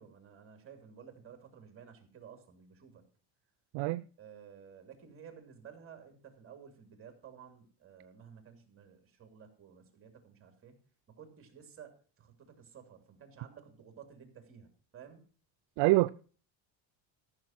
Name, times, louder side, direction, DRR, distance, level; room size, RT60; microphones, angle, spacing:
voice 1, 0.0-3.0 4.2-10.8 11.1-15.2, right 7 dB, 30° right, 3.0 m, -54 dB
voice 2, 3.7-4.1 15.8-16.1, right 21 dB, 70° right, 0.5 m, -25 dB
14.0 x 6.5 x 5.9 m
cardioid pair, 160°, 45 cm